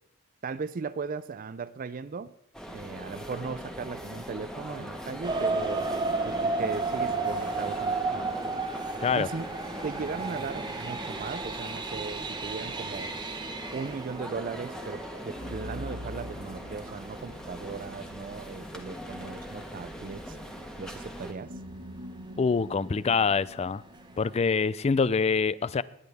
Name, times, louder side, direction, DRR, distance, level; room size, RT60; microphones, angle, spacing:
voice 1, 0.4-2.3 2.7-5.9 6.2-8.5 9.1-9.5 9.8-13.1 13.7-20.4 20.8-21.5, right 5 dB, 40° right, 0.4 m, -37 dB
sound 1, 2.5-21.3, equal, 5° left, 1.3 m, -41 dB
sound 2, 5.2-17.9 18.5-18.6 19.1-19.2 19.6-19.7, right 3 dB, 20° right, 1.1 m, -33 dB
sound 3, 7.2-9.0 10.0-12.1 15.4-19.1 21.4-24.3, equal, 70° right, 1.5 m, -46 dB
voice 2, 22.4-23.8 24.2-25.8, left 5 dB, 30° left, 0.3 m, -25 dB
20.0 x 9.7 x 3.5 m
head